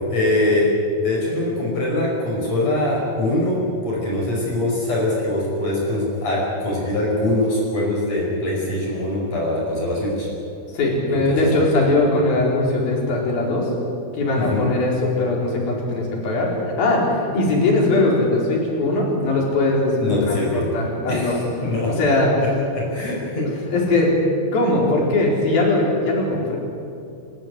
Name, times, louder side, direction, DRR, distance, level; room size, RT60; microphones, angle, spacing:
voice 1, 0.1-0.7 1.0-10.3 11.1-11.5 14.4-14.7 20.0-20.7 21.1-21.9 22.7-23.5, left 1 dB, 50° left, -3 dB, 6.6 m, -23 dB
voice 2, 10.7-13.7 14.1-20.0 20.2-21.4 21.9-22.4 23.7-24.2 24.5-26.6, left 2 dB, 85° left, -2 dB, 6.4 m, -20 dB
29.0 x 13.5 x 9.8 m, 2.5 s
omnidirectional pair, 4.1 m